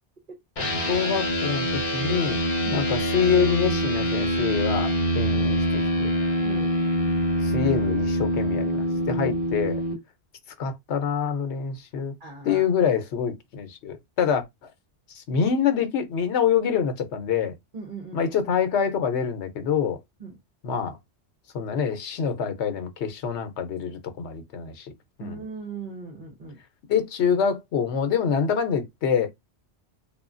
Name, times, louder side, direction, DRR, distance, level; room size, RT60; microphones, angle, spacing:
sound 1, 0.6-9.9, equal, 55° left, 1.0 m, -25 dB
voice 1, 0.9-2.4 2.7-6.1 7.4-9.8 10.6-12.1 12.4-14.4 15.2-17.5 18.1-20.0 20.6-21.0 21.5-24.9 25.2-25.4 26.9-29.3, left 7 dB, 85° left, 1.0 m, -26 dB
voice 2, 12.2-12.7 17.7-18.2 20.2-20.4 25.2-26.6, right 4 dB, 50° right, 1.0 m, -38 dB
3.0 x 2.4 x 2.4 m
omnidirectional pair, 1.1 m